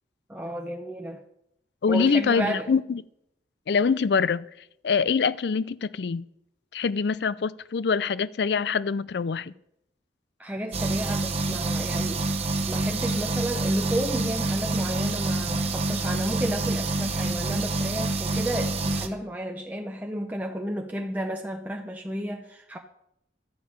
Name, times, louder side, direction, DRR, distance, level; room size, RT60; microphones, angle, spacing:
voice 1, 0.3-1.2 1.9-2.7 10.4-12.3 12.7-22.8, right 1 dB, 10° right, 0.7 m, -32 dB
voice 2, 1.8-3.0 3.7-4.4 4.8-6.2 6.7-9.5, left 5 dB, 65° left, 0.4 m, -24 dB
sound 1, 10.7-19.1, right 2 dB, 35° right, 1.2 m, -27 dB
12.0 x 5.7 x 8.6 m
head